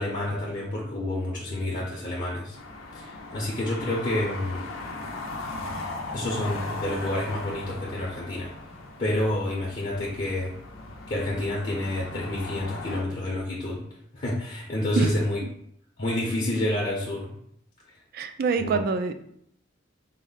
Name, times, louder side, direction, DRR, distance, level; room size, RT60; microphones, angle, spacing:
voice 1, 0.0-2.6 2.9-4.7 6.1-8.5 9.0-10.5 11.1-13.8 14.1-15.4 16.0-17.3 18.6-18.8, left 1 dB, 40° left, -4 dB, 0.7 m, -29 dB
sound 1, 2.5-13.0, left 2 dB, 80° left, 0.6 m, -38 dB
voice 2, 18.1-19.1, right 4 dB, 50° right, 9 dB, 0.3 m, -25 dB
4.1 x 2.1 x 3.8 m, 0.68 s
head